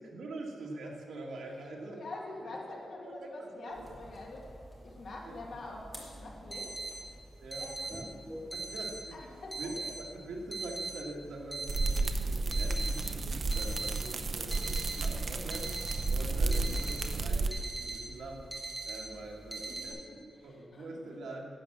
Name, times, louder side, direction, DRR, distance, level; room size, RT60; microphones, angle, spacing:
voice 1, 0.0-2.0 3.0-3.9 5.2-5.3 7.4-7.6 7.9-8.0 8.5-9.2 9.6-15.7 16.1-21.5, right 2 dB, 80° right, -1 dB, 1.8 m, -44 dB
voice 2, 1.5-7.1 7.5-8.0 9.1-9.9 19.5-21.3, left 2 dB, 55° left, -1 dB, 2.1 m, -46 dB
sound 1, 3.8-19.9, right 2 dB, ahead, 2.1 m, -42 dB
sound 2, 11.7-17.5, right 3 dB, 40° right, 0.7 m, -32 dB
11.5 x 7.8 x 7.4 m, 2.3 s
wide cardioid pair, 180°, 0 cm